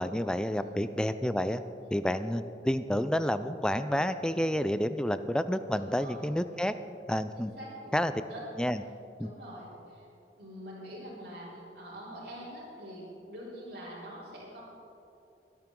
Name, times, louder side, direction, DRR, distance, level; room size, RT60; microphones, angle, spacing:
voice 1, 0.0-1.6 1.9-6.8 7.1-7.5 7.9-8.1 8.6-8.8 9.2-9.3, equal, 5° left, 11 dB, 0.4 m, -29 dB
voice 2, 0.5-0.8 5.7-6.3 7.4-8.0 8.3-8.5 9.2-10.0 10.4-14.6, equal, 75° right, -10 dB, 3.9 m, -45 dB
22.0 x 10.5 x 3.8 m, 2.8 s
head